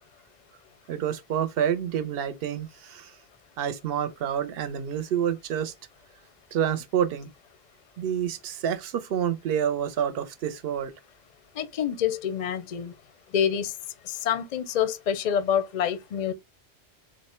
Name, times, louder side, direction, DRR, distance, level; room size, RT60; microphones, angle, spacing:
voice 1, 0.9-3.1 3.6-5.7 6.5-7.3 8.0-10.9, right 9 dB, 65° right, 0.8 m, -28 dB
voice 2, 11.5-12.9 13.3-13.7 14.0-16.3, left 8 dB, 50° left, 0.5 m, -27 dB
4.0 x 2.1 x 4.2 m
omnidirectional pair, 1.1 m